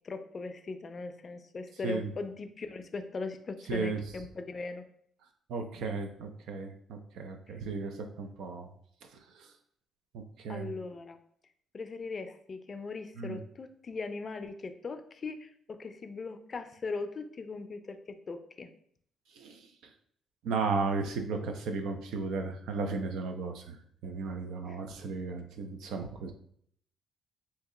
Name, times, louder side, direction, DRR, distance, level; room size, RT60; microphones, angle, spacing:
voice 1, 0.0-4.9 7.5-7.6 10.5-11.2 11.7-18.7 24.7-24.8, left 4 dB, 40° left, 8 dB, 0.4 m, -39 dB
voice 2, 3.7-4.0 5.5-8.7 9.3-9.5 10.1-10.7 13.2-13.4 19.4-19.6 20.4-23.8 24.0-26.3, right 4 dB, 85° right, 5 dB, 0.5 m, -35 dB
2.9 x 2.7 x 3.7 m, 0.64 s
cardioid pair, 90°, 0 cm